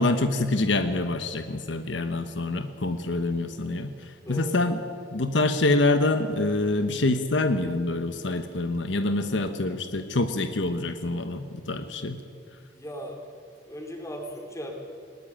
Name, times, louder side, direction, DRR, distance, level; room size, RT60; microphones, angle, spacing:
voice 1, 0.0-4.8 5.1-12.2, left 2 dB, 75° left, 8 dB, 1.1 m, -26 dB
voice 2, 4.2-4.7 12.7-13.2 13.7-14.7, equal, 15° left, 2 dB, 3.7 m, -37 dB
20.0 x 18.5 x 8.9 m, 2.2 s
head